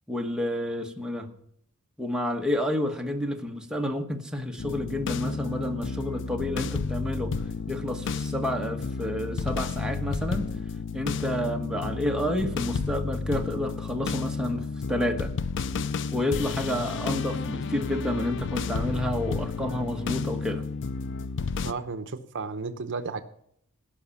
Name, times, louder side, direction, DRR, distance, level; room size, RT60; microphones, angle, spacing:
voice 1, 0.1-1.3 2.0-10.5 10.9-15.3 16.1-20.6, left 1 dB, 5° right, 3 dB, 1.2 m, -30 dB
sound 1, 4.6-21.7, left 4 dB, 55° left, 0.5 m, -31 dB
voice 2, 21.6-23.2, right 4 dB, 55° right, 10 dB, 0.8 m, -33 dB
16.5 x 5.8 x 7.0 m, 0.70 s
head